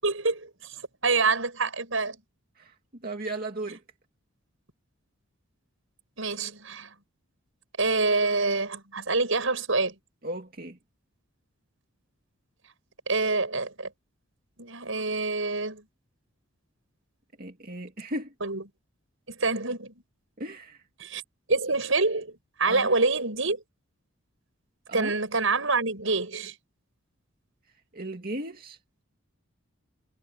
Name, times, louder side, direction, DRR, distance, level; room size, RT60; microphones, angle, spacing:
voice 1, 0.0-2.2 6.2-6.9 7.8-9.9 13.1-13.9 14.6-15.8 18.4-18.6 19.3-19.9 21.0-21.2 21.5-23.6 24.9-26.5, right 3 dB, 70° right, 7.2 m, -26 dB
voice 2, 3.0-3.8 10.2-10.8 17.4-18.3 20.4-20.8 22.6-22.9 24.9-25.1 27.9-28.8, right 1 dB, 45° right, 2.5 m, -35 dB
head